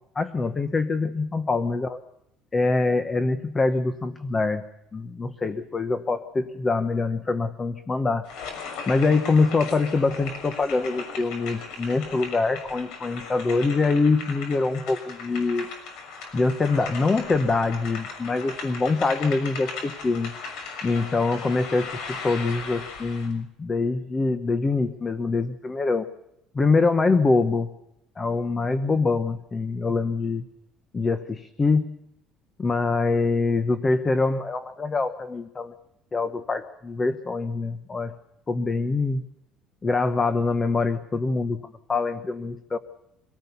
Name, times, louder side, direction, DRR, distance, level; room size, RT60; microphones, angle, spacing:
voice 1, 0.1-2.0 2.5-4.6 4.9-8.3 8.9-15.7 16.3-20.4 20.8-26.1 26.5-27.7 28.2-30.4 30.9-31.9 32.6-35.7 36.1-38.1 38.5-39.2 39.8-41.6 41.9-42.8, left 3 dB, 20° left, 10 dB, 1.0 m, -24 dB
sound 1, 8.2-23.3, left 5 dB, 70° left, 6.4 m, -38 dB
25.0 x 18.0 x 7.0 m, 0.82 s
cardioid pair, 165°, 0 cm